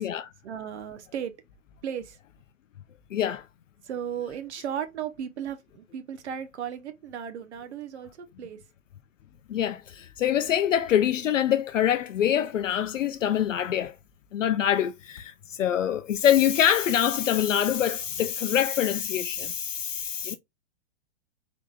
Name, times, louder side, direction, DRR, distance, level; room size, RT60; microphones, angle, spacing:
voice 1, 0.4-1.3 1.8-2.2 3.8-8.6, right 9 dB, 60° right, 0.8 m, -35 dB
voice 2, 3.1-3.4 9.5-13.9 14.3-20.3, left 10 dB, 70° left, 0.5 m, -25 dB
3.8 x 3.4 x 2.3 m
figure-of-eight pair, 115°, 39 cm